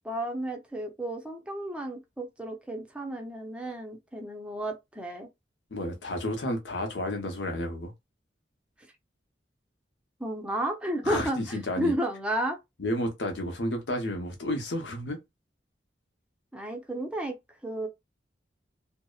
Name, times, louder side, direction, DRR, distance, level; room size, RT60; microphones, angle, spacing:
voice 1, 0.0-5.3 10.2-12.6 16.5-17.4 17.6-17.9, right 1 dB, 5° right, 0.5 m, -32 dB
voice 2, 5.7-7.9 11.0-11.9 12.8-15.2, left 1 dB, 85° left, 0.8 m, -31 dB
2.7 x 2.0 x 2.3 m
head